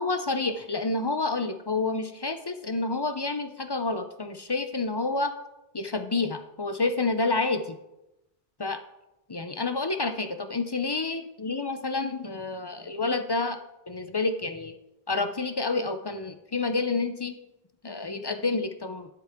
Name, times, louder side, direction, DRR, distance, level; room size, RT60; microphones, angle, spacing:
voice 1, 0.0-5.3 5.7-7.8 8.6-8.8 9.3-13.6 13.9-14.7 15.1-17.4 17.8-19.1, left 3 dB, 35° left, 8 dB, 0.5 m, -29 dB
12.0 x 7.6 x 3.5 m, 0.91 s
omnidirectional pair, 1.1 m